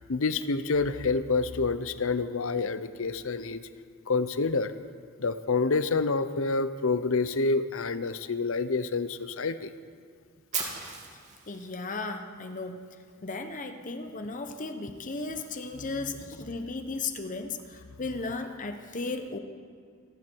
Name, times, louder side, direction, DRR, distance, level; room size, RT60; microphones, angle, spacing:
voice 1, 0.1-3.6 4.1-4.7 5.2-9.7, left 4 dB, 65° left, 12 dB, 0.7 m, -28 dB
Fire, 10.5-12.6, right 5 dB, 35° right, 2.4 m, -37 dB
voice 2, 11.5-12.9 13.2-19.4, left 3 dB, 35° left, 7 dB, 1.0 m, -35 dB
26.5 x 10.5 x 4.6 m, 2.1 s
head